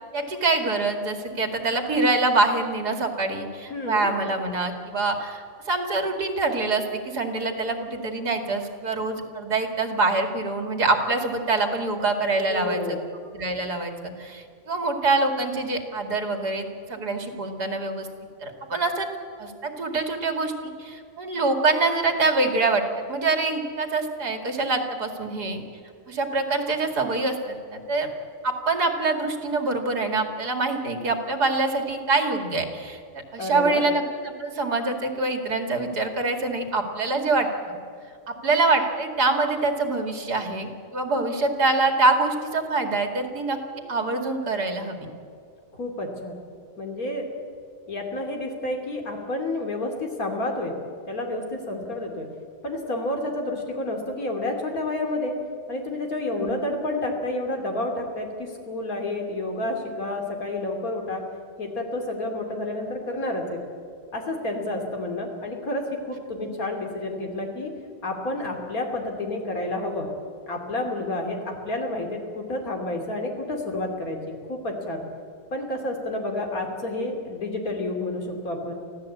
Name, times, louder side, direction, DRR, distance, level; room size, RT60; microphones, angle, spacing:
voice 1, 0.1-13.0 13.3-13.9 14.2-18.1 18.4-19.1 19.4-25.6 26.1-28.1 28.4-37.8 38.3-45.1 56.4-56.6 66.4-66.5, right 3 dB, 75° right, 4 dB, 2.8 m, -25 dB
voice 2, 3.7-4.1 12.5-13.0 33.4-33.9 45.8-46.3 46.8-47.3 47.9-50.8 51.0-52.3 52.6-55.3 55.7-61.2 61.6-63.6 64.1-67.7 68.0-70.1 70.5-75.0 75.5-78.8, left 2 dB, 60° left, 2 dB, 3.4 m, -30 dB
24.5 x 15.5 x 8.5 m, 2.3 s
omnidirectional pair, 1.7 m